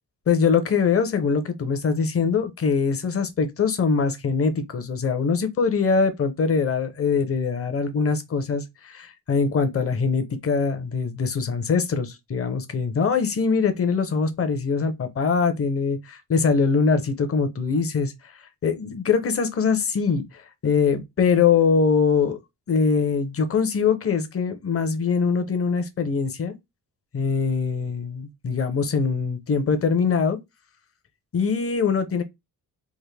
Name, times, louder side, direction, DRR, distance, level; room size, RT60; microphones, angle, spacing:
voice 1, 0.3-18.1 18.6-22.4 22.7-26.5 27.1-30.4 31.3-32.2, left 5 dB, 35° left, 0.7 m, -23 dB
3.7 x 2.5 x 3.2 m
wide cardioid pair, 165°, 38 cm